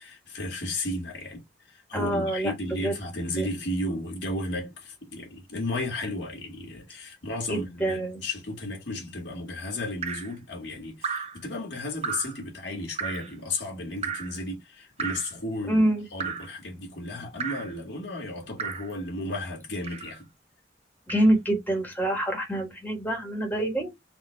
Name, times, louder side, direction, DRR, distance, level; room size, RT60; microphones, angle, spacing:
voice 1, 0.0-15.8 16.1-20.3, left 1 dB, 75° left, 1.9 m, -34 dB
voice 2, 1.9-2.5 2.8-2.9 3.4-3.5 7.5-8.2 15.7-16.1 21.1-23.9, right 1 dB, 10° left, 1.2 m, -26 dB
Drip, 10.0-10.3 11.0-11.4 12.0-12.4 13.0-13.3 14.0-14.4 15.0-15.4 16.2-16.5 17.4-17.7 18.6-18.9 19.8-20.2 21.1-21.3, right 6 dB, 35° right, 0.5 m, -33 dB
4.2 x 2.5 x 3.2 m
head